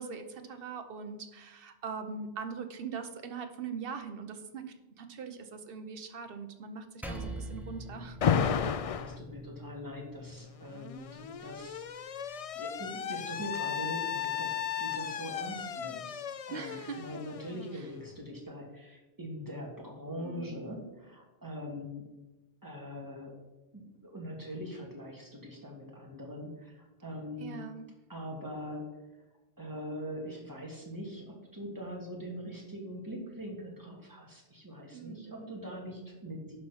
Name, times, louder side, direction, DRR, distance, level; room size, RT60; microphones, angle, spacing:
voice 1, 0.0-8.2 16.5-17.0 17.7-17.8 20.2-20.7 27.4-27.9 34.9-35.5, right 5 dB, 65° right, 8 dB, 1.1 m, -42 dB
Percussion, 7.0-11.8, right 1 dB, ahead, 0.8 m, -45 dB
Alarm, 8.2-9.2 10.4-18.1, left 8 dB, 60° left, 0.4 m, -34 dB
voice 2, 8.7-22.0 22.6-23.3 23.7-27.6 28.1-28.9 29.6-36.6, equal, 20° right, -1 dB, 2.0 m, -42 dB
11.0 x 4.3 x 5.6 m, 1.1 s
omnidirectional pair, 1.1 m